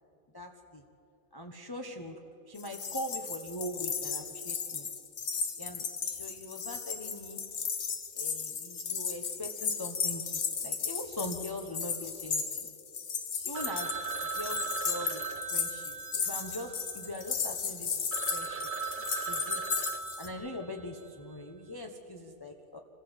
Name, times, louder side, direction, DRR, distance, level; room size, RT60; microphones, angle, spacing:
voice 1, 0.3-0.8 1.3-2.2 2.5-4.9 5.6-7.4 8.1-12.7 13.4-14.1 14.3-18.0 18.3-18.7 19.2-19.6 20.2-22.8, left 1 dB, 15° left, 2 dB, 1.1 m, -41 dB
sound 1, 2.6-20.3, left 6 dB, 80° left, 1.9 m, -35 dB
Telephone, 13.5-17.3 17.8-17.9 18.1-21.0, right 6 dB, 40° right, 1.0 m, -38 dB
26.0 x 16.0 x 8.2 m, 2.8 s
omnidirectional pair, 1.6 m